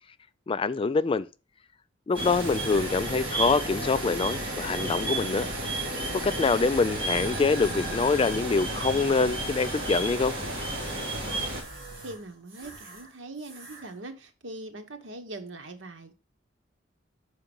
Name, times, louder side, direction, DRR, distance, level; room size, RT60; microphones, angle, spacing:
voice 1, 0.5-1.3 2.1-5.5 6.2-10.3, left 4 dB, 30° left, 0.3 m, -25 dB
sound 1, 2.1-11.6, right 1 dB, 30° right, 2.6 m, -32 dB
sound 2, 2.1-13.1 13.4-13.9, right 2 dB, 55° right, 2.6 m, -40 dB
voice 2, 11.2-11.8 12.0-16.1, right 2 dB, 75° right, 1.1 m, -42 dB
5.9 x 4.8 x 5.3 m
head